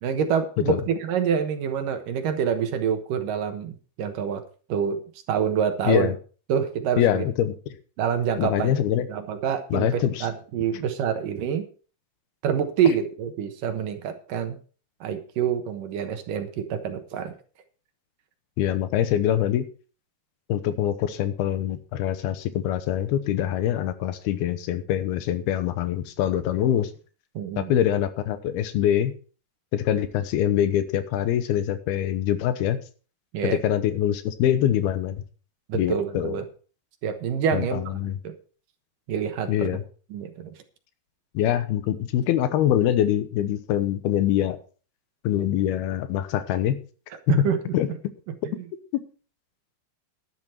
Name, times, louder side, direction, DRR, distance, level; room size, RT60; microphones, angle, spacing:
voice 1, 0.0-4.4 4.7-5.0 5.3-6.1 6.5-7.2 8.0-8.7 9.1-11.7 12.4-14.6 15.0-17.3 27.4-27.7 33.3-33.6 35.7-36.4 37.0-37.8 38.2-38.3 39.1-39.7 40.1-40.5 47.3-47.6, right 7 dB, 65° right, 7 dB, 2.6 m, -26 dB
voice 2, 7.0-7.6 8.4-9.1 9.7-10.3 18.6-19.7 20.5-26.9 27.6-29.1 29.7-32.8 33.4-35.2 35.7-36.4 37.5-38.2 39.5-39.8 41.3-44.6 45.2-46.8 47.3-47.5 47.7-47.9 48.9-49.0, left 11 dB, 85° left, 12 dB, 2.9 m, -24 dB
11.5 x 11.0 x 4.4 m, 0.39 s
omnidirectional pair, 4.4 m